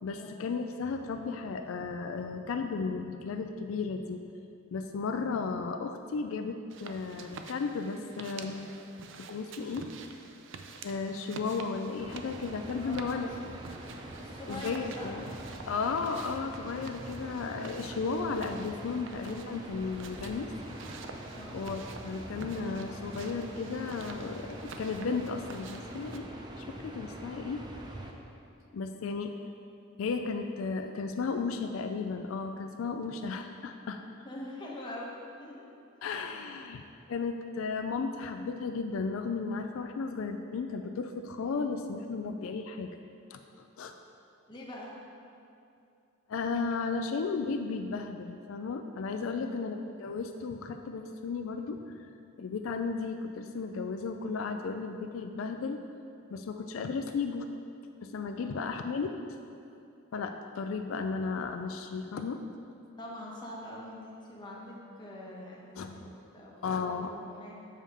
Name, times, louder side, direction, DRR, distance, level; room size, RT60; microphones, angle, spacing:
voice 1, 0.0-4.3 4.7-8.7 9.3-9.9 10.8-13.3 14.1-14.2 14.5-15.3 15.7-20.5 21.5-26.3 26.6-27.6 28.7-29.3 30.0-34.0 36.0-42.9 43.3-43.4 43.8-43.9 46.3-51.8 52.4-55.8 56.3-57.5 58.0-59.1 60.1-62.5 65.8-65.9 66.6-67.1, left 4 dB, 85° left, 6 dB, 0.4 m, -34 dB
sound 1, 6.7-26.2, right 4 dB, 65° right, 0.5 m, -48 dB
sound 2, 12.0-28.1, right 1 dB, 20° right, 0.6 m, -44 dB
voice 2, 12.7-13.3 14.2-15.1 21.3-21.6 34.2-35.7 44.5-44.9 49.2-49.6 58.3-58.6 63.0-67.7, left 1 dB, 20° left, -4 dB, 1.1 m, -44 dB
7.0 x 5.5 x 4.8 m, 2.6 s
head